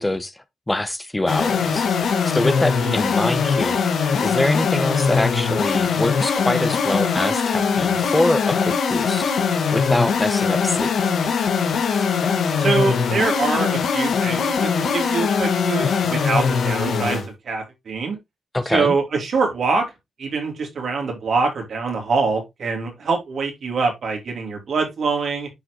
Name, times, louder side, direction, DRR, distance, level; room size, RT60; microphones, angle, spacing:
voice 1, 0.0-3.8 4.2-10.9 18.5-18.9, left 1 dB, 15° left, 1.0 m, -24 dB
sound 1, 1.3-17.3, left 6 dB, 75° left, 1.6 m, -21 dB
voice 2, 12.6-18.2 18.7-19.9 20.2-25.5, right 4 dB, 65° right, 3.0 m, -24 dB
10.0 x 4.7 x 3.0 m
cardioid pair, 65°, 0 cm